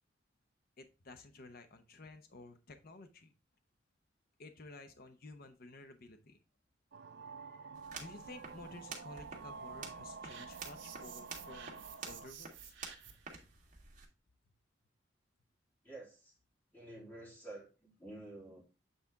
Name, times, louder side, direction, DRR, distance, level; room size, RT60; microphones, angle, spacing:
voice 1, 0.8-3.3 4.4-6.4 7.0-12.7, left 2 dB, 50° left, 7 dB, 0.8 m, -53 dB
sound 1, 6.9-12.3, right 5 dB, 60° right, 0.4 m, -49 dB
sound 2, 7.7-14.1, right 5 dB, 45° right, 1.8 m, -50 dB
sound 3, 10.3-13.3, right 8 dB, 80° right, 1.7 m, -53 dB
voice 2, 15.8-16.3 16.7-18.6, right 2 dB, 10° left, -3 dB, 2.7 m, -50 dB
8.1 x 4.3 x 3.5 m, 0.30 s
head